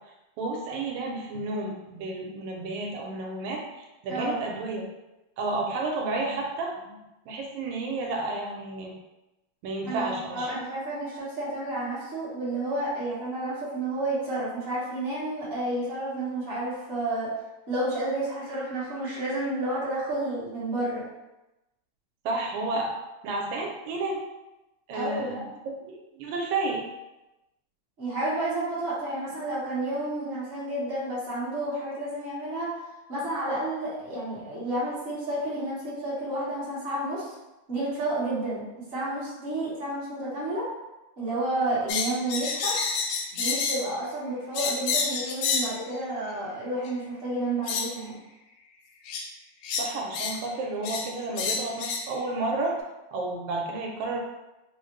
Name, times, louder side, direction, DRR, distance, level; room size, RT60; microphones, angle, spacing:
voice 1, 0.4-4.8 5.4-9.0 9.6-10.6 22.3-22.9 23.2-24.2 24.9-25.4 25.9-26.8 49.8-52.8 53.1-54.2, right 2 dB, 80° right, -1 dB, 2.0 m, -31 dB
voice 2, 9.8-17.3 17.7-21.1 24.9-25.5 28.0-32.7 33.1-37.3 37.7-40.7 41.2-42.7 43.3-48.2, right 1 dB, 35° right, -9 dB, 0.9 m, -31 dB
sound 1, 41.9-43.9 44.5-45.7 46.8-46.9 47.7-47.9 49.1-49.2 49.6-50.4 50.8-51.1 51.4-52.1, left 5 dB, 80° left, 1.6 m, -28 dB
4.7 x 2.1 x 3.0 m, 0.99 s
omnidirectional pair, 3.4 m